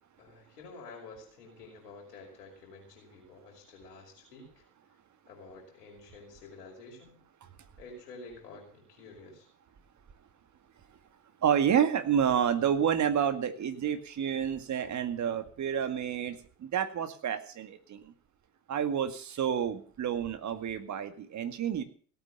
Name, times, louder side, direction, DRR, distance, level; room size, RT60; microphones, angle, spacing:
voice 1, 0.2-4.6 5.3-7.2 7.8-9.5, left 3 dB, 70° left, -1 dB, 5.7 m, -50 dB
voice 2, 11.4-18.1 18.7-21.8, right 8 dB, 35° right, 9 dB, 2.1 m, -29 dB
17.5 x 9.1 x 7.0 m, 0.44 s
figure-of-eight pair, 65°, 48 cm